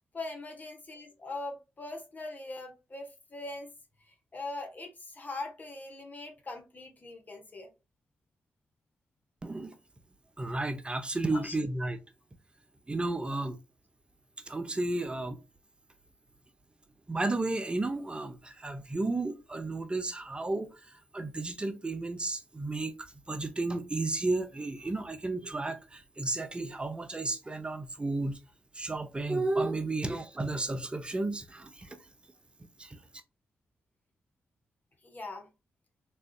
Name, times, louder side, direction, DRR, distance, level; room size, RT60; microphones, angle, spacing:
voice 1, 0.1-3.7 4.1-7.7 11.3-11.6 35.0-35.5, left 2 dB, 40° left, 1.2 m, -41 dB
voice 2, 9.4-9.7 10.4-12.0 12.9-13.6 14.5-15.4 17.1-20.8 21.1-23.0 23.3-28.4 28.7-32.0 32.8-33.0, right 2 dB, 25° right, 0.7 m, -33 dB
3.6 x 3.2 x 2.3 m
cardioid pair, 60°, 4 cm